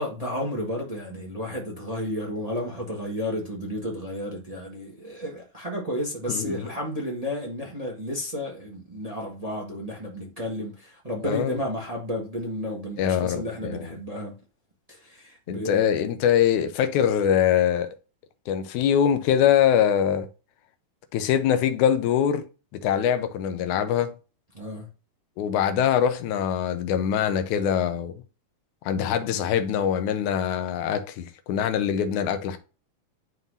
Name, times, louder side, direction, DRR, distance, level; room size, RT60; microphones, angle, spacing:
voice 1, 0.0-14.4 14.9-15.9 24.5-24.9, left 1 dB, 65° right, 0.3 m, -32 dB
voice 2, 6.3-6.7 11.2-11.6 13.0-14.0 15.5-18.0 18.5-20.3 21.1-22.4 22.8-24.1 25.4-28.1 28.9-32.6, left 9 dB, 75° left, 2.2 m, -23 dB
11.0 x 3.8 x 2.7 m
omnidirectional pair, 3.7 m